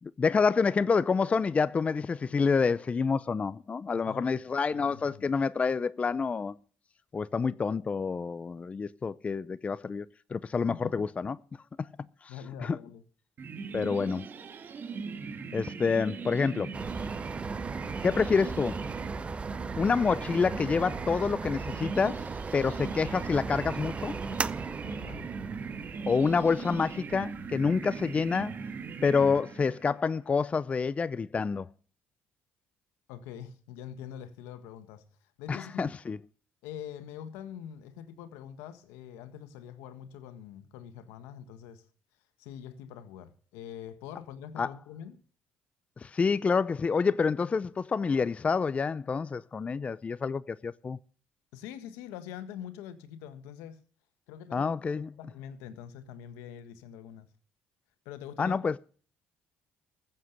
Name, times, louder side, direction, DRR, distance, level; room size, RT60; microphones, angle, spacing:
voice 1, 0.0-6.6 7.1-10.1 10.3-11.4 11.8-11.9 12.2-12.3 12.6-12.8 13.7-14.3 15.5-16.7 18.0-18.8 19.8-22.3 22.5-24.2 26.1-28.6 29.0-31.7 35.5-36.2 44.6-44.7 46.0-51.0 54.5-55.1 58.4-58.7, left 5 dB, 30° left, 0.5 m, -28 dB
voice 2, 4.1-4.4 4.7-5.2 10.7-11.0 12.3-13.0 13.8-14.0 19.7-20.0 24.8-25.3 33.1-35.1 35.4-35.9 36.6-41.9 42.4-45.2 51.5-53.8 54.3-57.3 58.0-58.6, left 9 dB, 90° left, 1.5 m, -44 dB
sound 1, 13.4-30.0, right 5 dB, 45° right, 1.6 m, -39 dB
sound 2, 16.7-29.2, right 4 dB, 25° right, 0.5 m, -38 dB
14.5 x 7.6 x 6.6 m
supercardioid pair, 90°, 5 cm